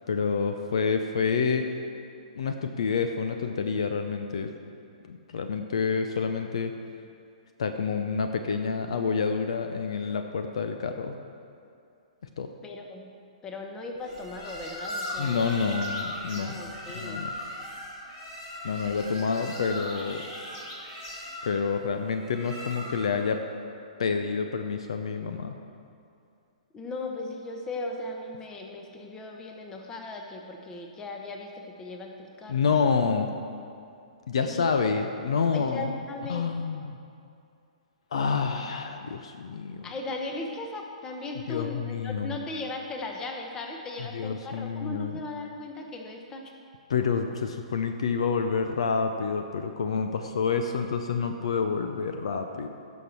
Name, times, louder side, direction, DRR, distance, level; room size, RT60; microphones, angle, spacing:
voice 1, 0.1-1.7 2.3-4.5 5.1-6.7 7.6-11.2 12.4-12.5 15.2-16.6 16.9-17.3 18.6-20.2 21.4-23.4 24.0-25.5 32.5-33.3 34.3-35.9 36.3-37.0 38.1-39.9 41.5-42.4 44.1-45.2 46.9-52.7, left 5 dB, 55° left, 6 dB, 0.6 m, -28 dB
voice 2, 12.6-13.1 13.4-15.8 16.3-17.2 26.7-32.7 34.4-34.8 35.5-36.5 39.8-46.5, left 2 dB, 15° left, 2 dB, 1.1 m, -38 dB
sound 1, 14.0-23.3, left 1 dB, 40° left, 2.5 m, -38 dB
16.0 x 6.4 x 4.5 m, 2.5 s
figure-of-eight pair, 115°, 4 cm